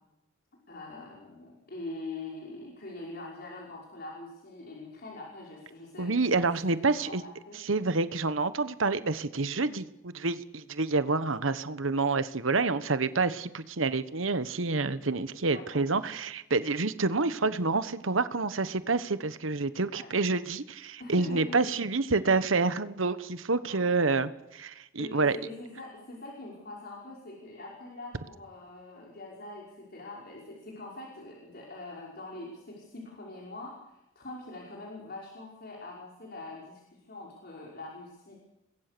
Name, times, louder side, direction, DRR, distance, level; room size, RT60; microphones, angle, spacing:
voice 1, 0.7-7.6 15.7-15.8 19.9-20.1 21.0-21.6 23.6-24.2 25.0-38.4, left 2 dB, 50° left, -2 dB, 5.5 m, -43 dB
voice 2, 6.0-7.2 7.7-25.4, right 3 dB, 75° right, 13 dB, 1.2 m, -28 dB
29.5 x 22.0 x 6.9 m, 0.93 s
head